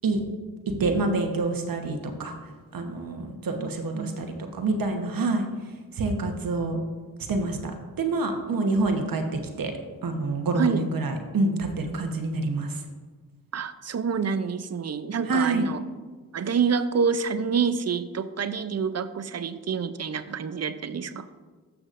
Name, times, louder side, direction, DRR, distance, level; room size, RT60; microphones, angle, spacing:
voice 1, 0.8-2.3 2.7-4.3 4.5-5.4 6.0-6.8 7.3-7.7 8.0-9.2 9.6-9.7 10.0-12.8 15.3-15.6, right 3 dB, 65° right, 4 dB, 1.1 m, -26 dB
voice 2, 3.5-4.1 10.5-10.9 13.5-15.8 16.3-21.3, right 6 dB, 45° right, 12 dB, 0.6 m, -27 dB
13.5 x 6.0 x 2.6 m, 1.4 s
supercardioid pair, 45°, 37 cm